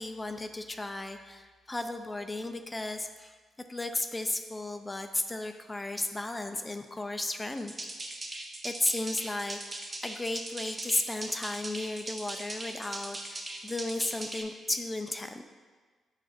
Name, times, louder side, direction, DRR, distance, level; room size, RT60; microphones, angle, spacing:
voice 1, 0.0-3.3 3.7-7.7 8.0-8.3 8.6-15.4, left 2 dB, 15° left, 7 dB, 0.4 m, -34 dB
sound 1, 7.6-14.4, right 2 dB, 30° right, 0.7 m, -40 dB
7.6 x 2.5 x 5.7 m, 1.4 s
cardioid pair, 95°, 0 cm